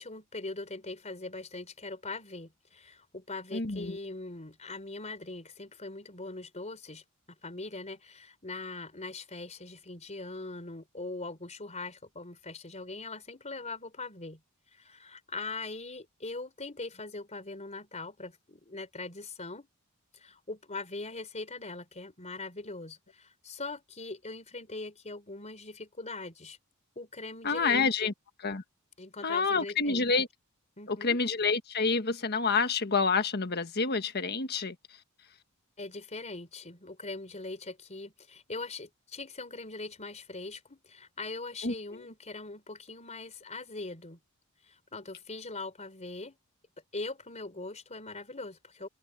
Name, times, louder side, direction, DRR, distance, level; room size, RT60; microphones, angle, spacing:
voice 1, 0.0-7.0 7.4-14.4 14.7-19.7 20.1-26.6 27.0-28.1 29.0-30.1 30.8-31.2 35.8-44.2 44.7-46.4 46.9-48.9, left 3 dB, 30° left, 4.3 m, -41 dB
voice 2, 3.5-4.0 27.4-28.1 28.4-28.6 29.2-30.3 30.9-34.7 41.6-42.0, left 4 dB, 45° left, 1.5 m, -28 dB
open air
head